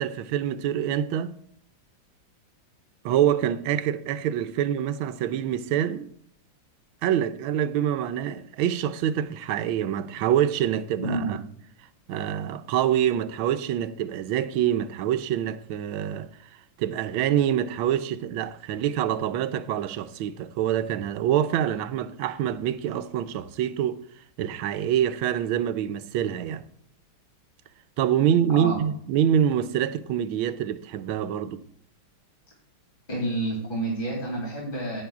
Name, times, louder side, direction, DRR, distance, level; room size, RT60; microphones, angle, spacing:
voice 1, 0.0-1.4 3.0-6.1 7.0-11.4 12.1-16.3 16.8-24.0 24.4-26.6 28.0-31.6, right 10 dB, 85° right, 1.4 m, -26 dB
voice 2, 11.0-11.3 28.5-28.8 31.4-31.5 33.1-35.0, right 1 dB, 25° left, 2.7 m, -29 dB
16.5 x 10.0 x 2.4 m
omnidirectional pair, 2.2 m